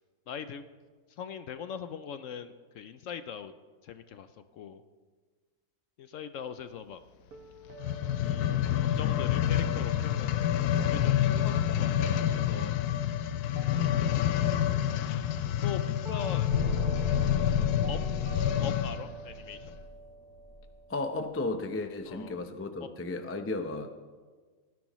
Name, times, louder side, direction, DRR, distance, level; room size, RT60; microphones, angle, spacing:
voice 1, 0.3-0.6 1.2-3.5 3.8-4.8 6.0-7.0 8.2-10.4 10.7-12.7 13.7-14.6 15.6-16.5 17.9-18.0 18.6-19.7 22.1-22.4 22.8-22.9, left 7 dB, 65° left, 11 dB, 0.9 m, -41 dB
sound 1, 7.3-13.3 13.5-21.3, right 3 dB, 75° right, 1.7 m, -49 dB
sound 2, 7.7-19.1 19.7-19.8, left 11 dB, 85° left, 1.1 m, -28 dB
sound 3, 16.5-20.6, right 1 dB, 45° right, 5.5 m, -38 dB
voice 2, 20.9-23.9, left 2 dB, 20° left, 7 dB, 0.4 m, -34 dB
18.0 x 14.0 x 3.1 m, 1.5 s
omnidirectional pair, 1.6 m